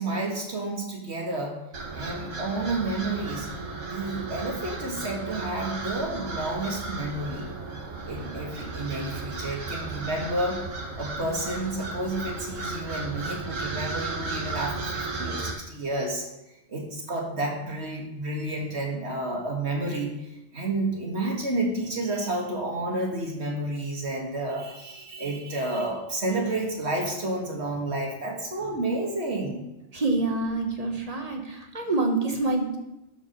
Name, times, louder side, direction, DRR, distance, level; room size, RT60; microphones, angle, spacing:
voice 1, 0.0-1.6 1.9-3.5 3.9-7.5 8.1-10.7 11.0-16.2 16.7-29.6 31.8-31.9, right 2 dB, 60° right, 0 dB, 2.2 m, -30 dB
sound 1, 1.7-15.5, right 3 dB, 85° right, 1.8 m, -34 dB
voice 2, 29.9-32.8, right 3 dB, 30° right, 3 dB, 1.4 m, -26 dB
12.5 x 4.9 x 5.4 m, 0.94 s
omnidirectional pair, 1.3 m